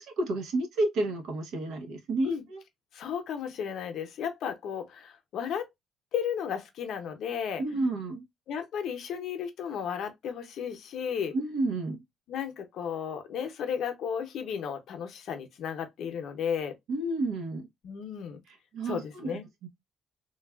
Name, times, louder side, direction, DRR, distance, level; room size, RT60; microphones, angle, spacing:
voice 1, 0.0-2.6 7.6-8.2 11.3-12.0 16.9-17.7 18.7-19.7, right 2 dB, 80° right, 0.8 m, -31 dB
voice 2, 2.9-5.7 6.1-7.6 8.5-11.3 12.3-16.7 17.8-18.4 18.9-19.4, left 7 dB, 60° left, 0.6 m, -34 dB
3.1 x 2.3 x 2.2 m
cardioid pair, 165°, 0 cm